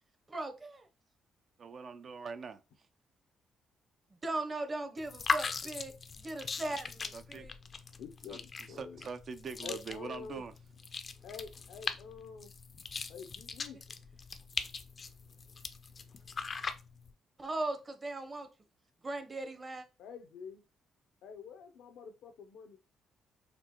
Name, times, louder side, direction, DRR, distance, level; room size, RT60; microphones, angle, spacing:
voice 1, 0.3-0.9 4.2-7.5 17.4-18.5 19.0-19.9, right 2 dB, 25° right, 0.7 m, -38 dB
voice 2, 1.6-2.6 7.1-7.5 8.3-8.4 8.7-10.5, right 5 dB, 50° right, 0.4 m, -43 dB
sound 1, 5.0-17.1, left 5 dB, 40° left, 0.4 m, -40 dB
voice 3, 8.0-9.0 9.6-10.4 11.2-12.5 13.1-14.0 20.0-20.6 21.2-22.8, left 6 dB, 80° left, 0.7 m, -47 dB
4.2 x 2.4 x 2.9 m
cardioid pair, 90°, 0 cm